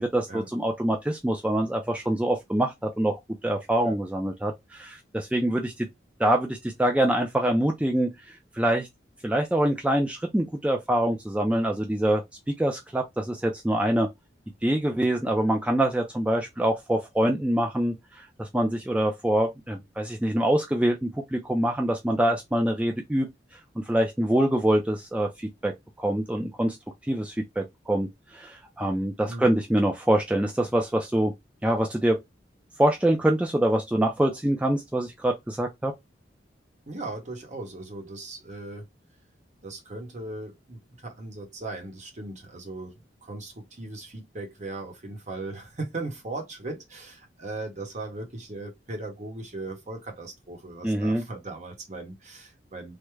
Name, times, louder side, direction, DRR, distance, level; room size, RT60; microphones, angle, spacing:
voice 1, 0.0-3.2 3.4-5.9 6.2-8.9 9.2-12.2 12.6-14.1 14.6-23.3 23.8-26.8 27.1-31.3 31.6-32.2 32.8-35.9 50.8-51.2, right 1 dB, 5° right, 0.4 m, -25 dB
voice 2, 29.3-29.6 36.9-38.8 39.6-42.9 43.2-53.0, right 2 dB, 40° right, 1.0 m, -38 dB
3.4 x 2.1 x 3.1 m
head